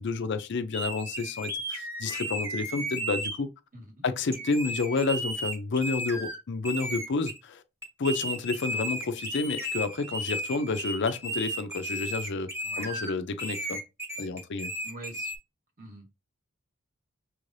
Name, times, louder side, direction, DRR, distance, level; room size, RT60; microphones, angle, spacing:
voice 1, 0.0-3.5 4.0-7.6 8.0-12.5 12.8-13.8 14.2-14.7, left 3 dB, 55° left, 0.5 m, -30 dB
sound 1, 0.7-3.4 4.3-6.4 6.6-7.4 7.8-13.1 13.4-15.4, equal, 10° right, 1.2 m, -34 dB
voice 2, 3.7-4.1 12.6-12.9 14.8-15.3 15.8-16.1, right 1 dB, 40° right, 1.2 m, -45 dB
6.1 x 3.2 x 2.6 m
head